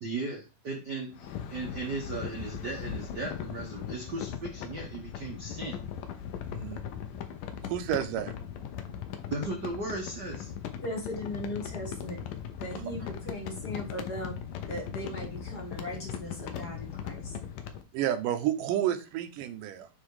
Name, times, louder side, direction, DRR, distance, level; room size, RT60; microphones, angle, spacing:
voice 1, 0.0-5.8 9.3-10.5, right 3 dB, 50° right, 0 dB, 1.2 m, -36 dB
sound 1, 1.1-17.8, left 8 dB, 90° left, 2.5 m, -39 dB
voice 2, 6.5-6.8 7.6-8.3 12.8-12.9 17.9-19.9, right 11 dB, 80° right, 8 dB, 2.5 m, -30 dB
voice 3, 10.8-12.2 12.6-14.4 14.7-17.4, equal, 35° left, 0 dB, 2.3 m, -38 dB
9.4 x 3.5 x 4.9 m, 0.29 s
omnidirectional pair, 3.7 m